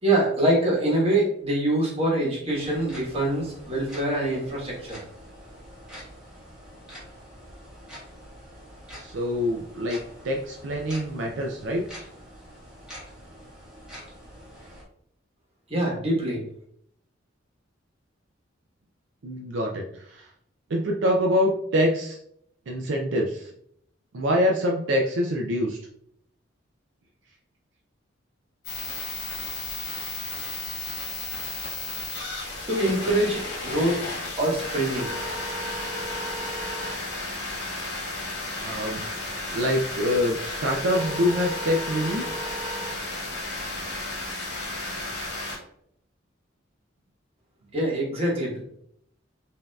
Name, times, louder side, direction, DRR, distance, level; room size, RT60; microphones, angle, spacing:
voice 1, 0.0-5.0 15.7-16.4 32.7-34.0 34.4-35.1 47.7-48.6, right 1 dB, 30° right, -4 dB, 1.3 m, -24 dB
sound 1, 2.5-14.8, equal, 5° right, 1.5 m, -45 dB
voice 2, 8.9-10.0 10.2-11.9 19.2-20.3 20.7-22.2 22.7-23.5 24.1-25.8 38.6-39.1 39.5-42.3, equal, 70° right, 0 dB, 0.5 m, -25 dB
sound 2, 28.6-45.6, left 2 dB, 60° left, 1.4 m, -33 dB
5.1 x 2.7 x 2.3 m, 0.70 s
head